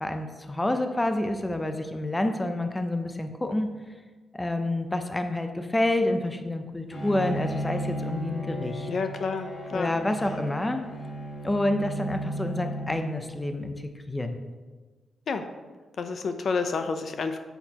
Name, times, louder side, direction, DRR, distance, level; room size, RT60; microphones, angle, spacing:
voice 1, 0.0-3.7 4.3-8.9 9.7-10.8 11.4-14.4, left 1 dB, 15° left, 6 dB, 0.6 m, -28 dB
Bowed string instrument, 6.9-13.6, equal, 75° left, 2.3 m, -35 dB
voice 2, 8.9-10.0 15.3-15.5 16.0-17.4, left 4 dB, 55° left, 8 dB, 0.6 m, -29 dB
8.7 x 8.0 x 2.9 m, 1.3 s
wide cardioid pair, 130°, 0 cm